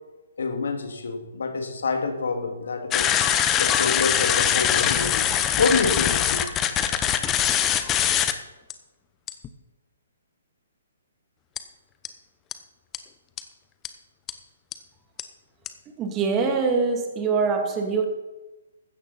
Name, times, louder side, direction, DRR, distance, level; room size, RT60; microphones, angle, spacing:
voice 1, 0.4-3.2 3.6-5.2 5.6-6.4, left 4 dB, 70° left, 5 dB, 2.4 m, -27 dB
sound 1, 2.9-8.3 8.7-8.8 9.3-9.5 11.6-11.7 12.0-12.1 12.5-12.6 12.9-13.0 13.4-13.5 13.8-13.9 14.3-14.4 14.7-14.8 15.2-15.3 15.7-15.8, left 10 dB, 20° left, 1.0 m, -22 dB
voice 2, 16.0-18.1, right 4 dB, 20° right, 3 dB, 2.5 m, -23 dB
16.0 x 12.5 x 4.3 m, 1.1 s
hypercardioid pair, 135°, 0 cm